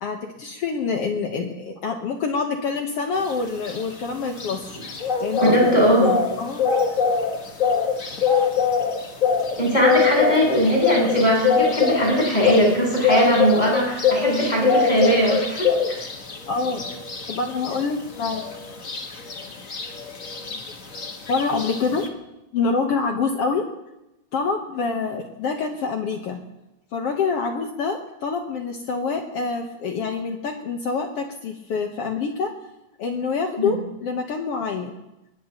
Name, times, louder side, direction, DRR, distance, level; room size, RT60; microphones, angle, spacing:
voice 1, 0.0-4.8 5.2-5.7 6.4-6.7 16.5-16.9 17.3-18.5 20.4-20.6 21.3-22.1 22.5-23.7 24.3-26.4 26.9-32.5 33.0-34.9, left 4 dB, 60° left, 3 dB, 1.8 m, -26 dB
sound 1, 3.2-22.1, left 6 dB, 40° left, 1.2 m, -24 dB
voice 2, 5.4-6.1 9.6-15.7 33.6-33.7, right 1 dB, 15° left, -4 dB, 7.6 m, -20 dB
23.5 x 21.0 x 3.0 m, 0.94 s
omnidirectional pair, 3.4 m